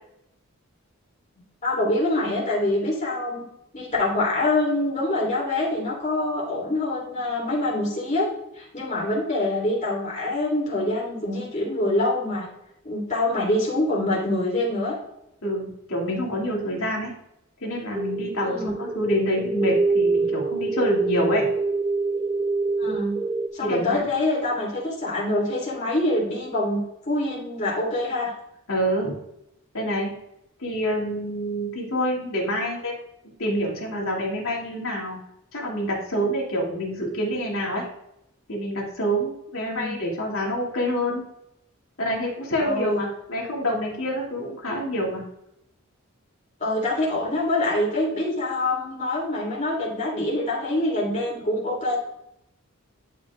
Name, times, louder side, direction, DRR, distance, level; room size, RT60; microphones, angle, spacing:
voice 1, 1.6-3.4 3.7-8.3 8.6-12.5 12.8-15.0 18.4-18.7 22.8-23.1 23.5-26.8 27.1-28.3 39.6-39.9 42.6-43.0 46.6-52.0, left 1 dB, 35° left, -4 dB, 2.9 m, -25 dB
voice 2, 15.4-17.1 17.6-21.4 23.6-24.1 28.7-29.1 29.7-30.1 30.6-33.0 33.4-35.2 35.5-37.9 38.5-41.3 42.0-45.2, equal, 80° left, -3 dB, 2.7 m, -27 dB
sound 1, 17.9-23.5, right 3 dB, 15° right, 0.3 m, -25 dB
11.0 x 5.2 x 2.4 m, 0.82 s
head